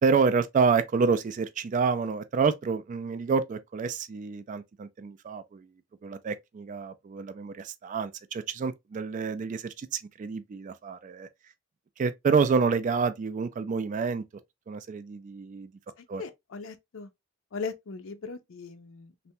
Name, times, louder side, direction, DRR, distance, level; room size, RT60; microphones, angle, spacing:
voice 1, 0.0-5.7 6.0-11.3 12.0-14.2 14.7-15.7 16.1-16.2, right 5 dB, 40° right, 0.3 m, -28 dB
voice 2, 16.0-17.1 17.5-19.3, left 5 dB, 75° left, 0.5 m, -39 dB
3.3 x 2.1 x 2.6 m
head